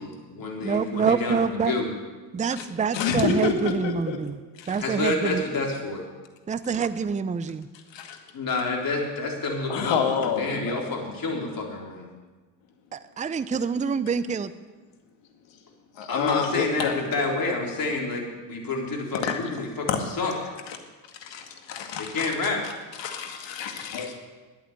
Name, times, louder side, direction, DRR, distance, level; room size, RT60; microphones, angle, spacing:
voice 1, 0.0-1.9 4.8-6.0 8.3-12.1 16.1-20.5 22.0-22.6, left 3 dB, 45° left, 0 dB, 3.9 m, -29 dB
voice 2, 0.6-1.7 2.3-4.4 4.7-5.4 6.5-7.7 12.9-14.5, right 6 dB, 15° right, 14 dB, 0.6 m, -26 dB
voice 3, 2.9-4.2 4.6-4.8 7.9-8.2 9.7-10.8 16.0-16.9 19.2-19.3 19.9-20.0 20.7-20.8 21.2-22.3 23.0-24.2, left 6 dB, 60° left, 4 dB, 2.2 m, -28 dB
11.5 x 8.7 x 8.7 m, 1.3 s
hypercardioid pair, 70°, 49 cm